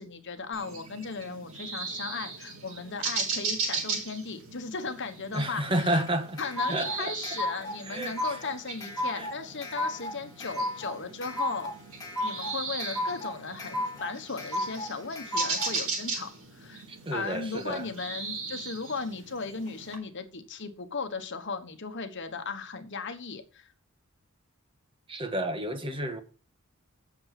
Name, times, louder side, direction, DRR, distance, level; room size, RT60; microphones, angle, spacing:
voice 1, 0.0-6.0 6.4-11.7 12.2-16.8 17.1-23.7, left 4 dB, 55° left, 1.2 m, -37 dB
sound 1, 0.5-20.0, right 4 dB, 75° right, 4.8 m, -38 dB
voice 2, 5.3-6.4 6.7-7.1 7.8-8.2 9.1-9.3 16.9-17.9 25.1-26.2, right 1 dB, 25° right, 1.3 m, -30 dB
sound 2, 5.8-15.8, left 1 dB, 15° left, 2.2 m, -34 dB
8.7 x 7.1 x 5.8 m
head